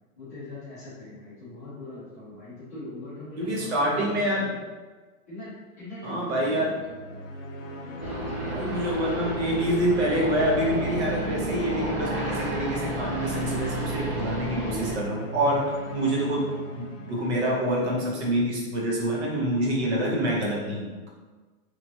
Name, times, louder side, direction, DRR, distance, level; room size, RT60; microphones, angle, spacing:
voice 1, 0.2-4.6 5.3-7.3, left 1 dB, 10° left, -14 dB, 0.5 m, -41 dB
voice 2, 3.4-4.5 6.0-6.8 8.5-15.6 15.9-16.5 16.7-21.1, right 1 dB, 50° right, -3 dB, 0.8 m, -26 dB
sound 1, 6.8-18.2, equal, 60° left, 0.5 m, -38 dB
sound 2, 8.0-15.0, right 1 dB, 80° right, 1.3 m, -31 dB
3.0 x 2.4 x 2.7 m, 1.3 s
hypercardioid pair, 180°, 43 cm